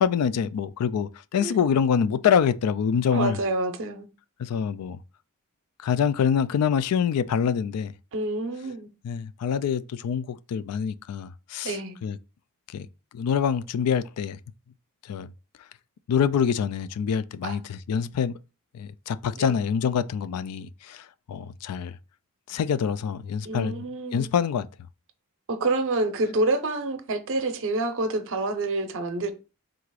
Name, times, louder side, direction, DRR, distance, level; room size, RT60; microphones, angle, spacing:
voice 1, 0.0-3.4 4.4-5.0 5.8-7.9 9.0-11.8 12.0-12.2 12.7-12.9 13.1-14.4 15.1-15.3 16.1-18.3 18.7-21.9 22.5-23.8 24.1-24.7, left 7 dB, 85° left, 0.3 m, -25 dB
voice 2, 3.1-4.1 8.1-8.9 11.6-12.0 17.4-17.6 19.4-19.6 23.4-24.3 25.5-29.3, right 2 dB, 60° right, 0.6 m, -27 dB
3.8 x 2.4 x 4.7 m
head